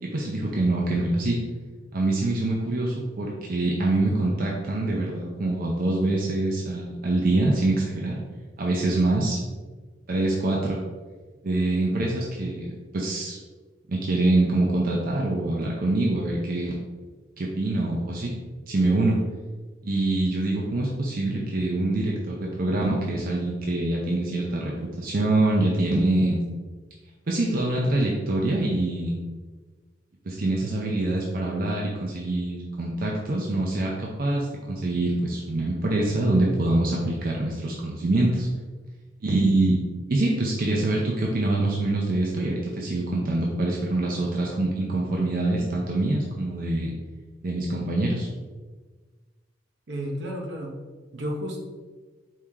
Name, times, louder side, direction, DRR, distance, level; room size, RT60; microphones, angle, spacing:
voice 1, 0.0-1.4 1.9-8.2 8.6-9.4 10.1-10.8 11.4-13.4 13.9-16.8 17.4-18.3 18.7-19.2 19.8-26.4 27.3-29.2 30.3-38.5 39.2-39.8 40.1-46.9 47.4-48.3, right 2 dB, 55° right, -2 dB, 0.6 m, -25 dB
voice 2, 49.9-50.8 51.1-51.6, equal, 75° right, 1 dB, 0.8 m, -32 dB
4.7 x 2.8 x 3.6 m, 1.4 s
head